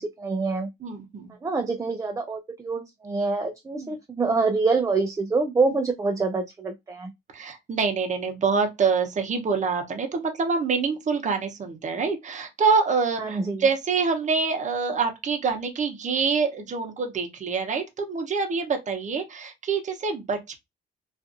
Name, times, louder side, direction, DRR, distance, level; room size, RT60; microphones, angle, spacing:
voice 1, 0.0-0.7 1.4-7.1 13.2-13.6, right 4 dB, 15° right, 0.4 m, -26 dB
voice 2, 0.8-1.3 3.8-3.9 5.7-5.8 7.3-20.6, right 5 dB, 40° right, 0.7 m, -26 dB
2.5 x 2.4 x 2.5 m
cardioid pair, 90°, 20 cm